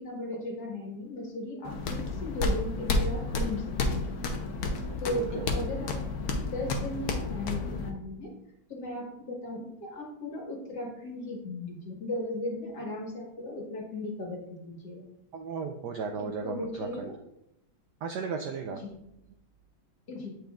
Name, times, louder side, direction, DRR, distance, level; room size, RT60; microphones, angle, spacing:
voice 1, 0.0-4.1 5.0-8.3 8.7-15.1 16.2-17.1 18.8-19.0 20.1-20.4, left 1 dB, 50° left, -1 dB, 2.0 m, -37 dB
sound 1, 1.6-7.9, left 2 dB, 65° left, 0.9 m, -31 dB
voice 2, 5.1-5.5 15.3-17.1 18.0-18.8, right 5 dB, 90° right, 5 dB, 0.9 m, -35 dB
8.4 x 6.1 x 2.4 m, 0.82 s
omnidirectional pair, 2.4 m